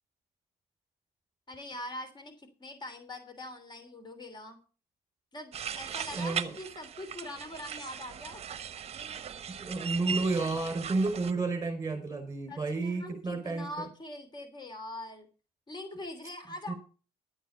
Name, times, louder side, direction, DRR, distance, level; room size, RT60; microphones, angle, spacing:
voice 1, 1.5-4.6 5.3-8.4 12.5-15.3 15.7-16.7, left 1 dB, 25° left, 8 dB, 3.1 m, -43 dB
sound 1, 5.5-11.3, right 7 dB, 40° right, 1.0 m, -38 dB
voice 2, 6.1-6.5 9.6-13.9 16.7-16.8, right 3 dB, 20° right, 7 dB, 5.0 m, -31 dB
11.5 x 9.1 x 5.6 m, 0.36 s
cardioid pair, 110°, 17 cm